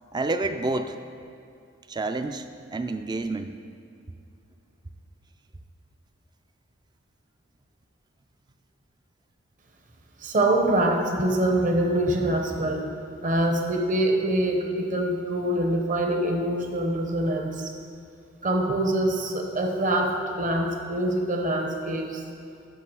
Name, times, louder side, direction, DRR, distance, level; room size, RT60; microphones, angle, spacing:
voice 1, 0.1-1.0 1.9-2.5 2.7-3.5, right 2 dB, 20° right, 8 dB, 0.3 m, -28 dB
voice 2, 10.2-12.8 13.2-17.7 18.4-22.2, right 1 dB, 40° right, 2 dB, 0.9 m, -24 dB
11.5 x 5.7 x 4.7 m, 2.5 s
head